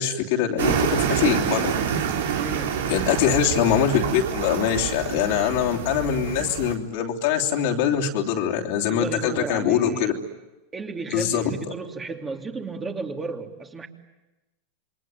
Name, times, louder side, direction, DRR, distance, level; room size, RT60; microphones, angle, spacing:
voice 1, 0.0-1.8 2.9-10.1 11.1-11.5, left 8 dB, 65° left, 0 dB, 3.3 m, -23 dB
sound 1, 0.6-6.7, right 7 dB, 85° right, 3.7 m, -27 dB
voice 2, 2.4-2.9 8.9-10.2 10.7-13.9, right 4 dB, 20° right, 3 dB, 3.1 m, -33 dB
28.0 x 22.5 x 9.2 m, 1.1 s
hypercardioid pair, 110°, 0 cm